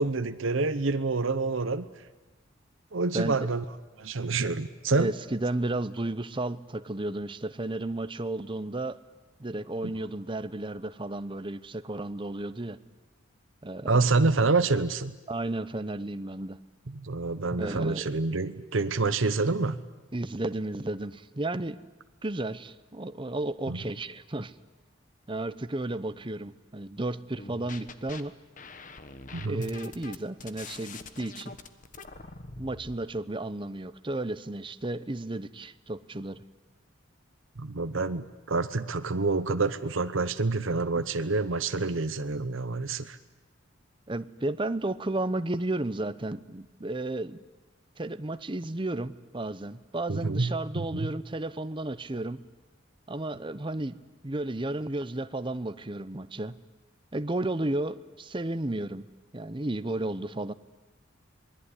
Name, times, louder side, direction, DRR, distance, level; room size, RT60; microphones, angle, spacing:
voice 1, 0.0-1.8 2.9-3.6 4.0-5.1 9.8-9.9 13.9-15.2 16.9-19.8 23.7-23.8 29.3-29.7 37.6-43.2 50.1-51.1, right 3 dB, 75° right, 10 dB, 0.9 m, -27 dB
voice 2, 5.0-9.0 9.4-12.8 13.6-14.1 15.3-16.6 17.5-18.0 20.1-21.8 22.2-24.5 25.3-28.3 29.4-31.5 32.5-36.4 44.1-47.4 48.0-52.4 53.1-56.6 57.1-59.1 59.3-60.5, right 2 dB, 25° right, 13 dB, 0.8 m, -33 dB
sound 1, 27.4-28.2 28.6-33.0, left 4 dB, 40° left, 1.3 m, -44 dB
27.0 x 21.0 x 9.9 m, 1.2 s
head